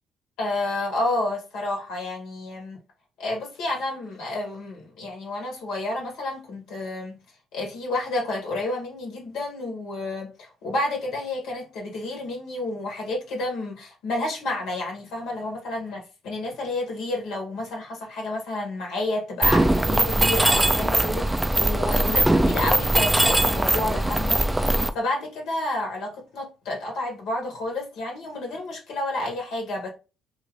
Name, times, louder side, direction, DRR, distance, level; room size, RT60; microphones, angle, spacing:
voice 1, 0.4-2.8 3.2-7.2 7.5-29.9, left 2 dB, 80° left, 1.1 m, -30 dB
Mechanisms, 19.4-24.9, right 1 dB, 10° right, 0.4 m, -21 dB
2.6 x 2.5 x 3.4 m
supercardioid pair, 65°, 0 cm